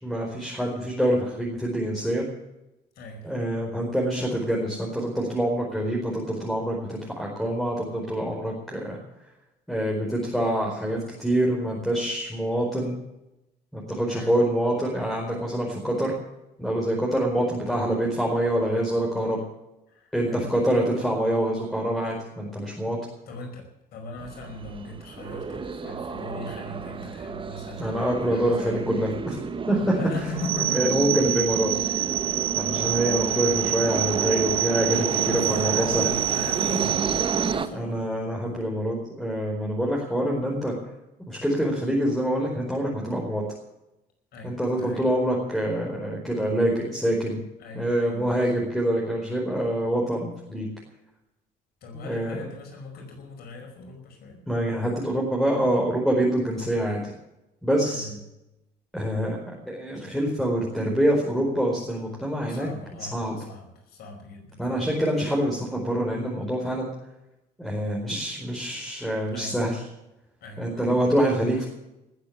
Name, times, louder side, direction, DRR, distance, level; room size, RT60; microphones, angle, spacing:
voice 1, 0.0-2.2 3.2-9.0 9.7-12.9 13.7-16.1 16.6-19.4 20.1-23.0 27.8-29.4 29.7-29.9 30.7-31.7 32.5-36.1 37.7-40.7 41.3-43.4 44.4-47.4 47.7-50.7 51.9-52.4 54.5-57.1 57.6-58.1 58.9-62.7 63.0-63.4 64.6-66.9 67.6-69.8 70.6-71.7, right 1 dB, ahead, -3 dB, 4.6 m, -25 dB
voice 2, 3.0-3.3 14.1-14.4 19.9-20.5 23.3-29.0 29.7-31.0 32.7-33.1 35.2-38.1 44.3-45.0 47.6-48.6 51.8-54.4 57.8-58.2 62.3-64.8 69.3-69.6 70.4-71.0 71.6-71.7, left 1 dB, 70° left, 2 dB, 5.2 m, -39 dB
sound 1, 24.2-37.7, right 5 dB, 30° right, 1.4 m, -32 dB
sound 2, 30.4-37.5, right 14 dB, 65° right, 0.6 m, -27 dB
19.5 x 8.1 x 8.8 m, 0.91 s
cardioid pair, 110°, 17 cm